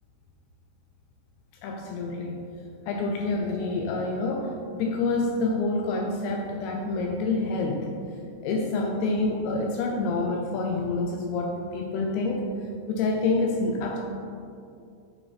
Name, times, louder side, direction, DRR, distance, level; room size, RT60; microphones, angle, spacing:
voice 1, 1.6-2.4 2.9-8.0 8.4-12.5 12.9-14.0, left 3 dB, 80° left, 2 dB, 2.6 m, -27 dB
10.5 x 6.1 x 4.1 m, 2.5 s
omnidirectional pair, 4.8 m